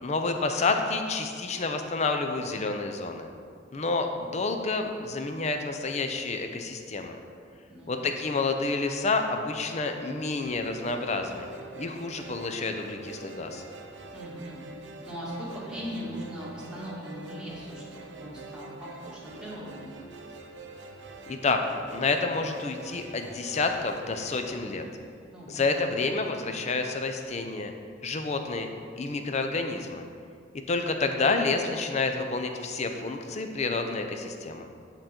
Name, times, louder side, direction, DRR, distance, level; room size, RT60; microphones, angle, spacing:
voice 1, 0.0-3.3 3.7-7.2 7.9-11.5 11.8-13.6 21.3-21.6 21.9-24.8 25.5-27.7 28.0-28.7 29.0-30.1 30.7-34.7, left 3 dB, 35° left, 5 dB, 0.5 m, -29 dB
voice 2, 7.7-8.2 14.1-14.6 15.1-19.9 25.3-25.8, equal, 5° right, -7 dB, 1.6 m, -39 dB
sound 1, 10.4-25.7, right 3 dB, 70° right, 0.6 m, -45 dB
9.0 x 3.8 x 4.4 m, 2.2 s
head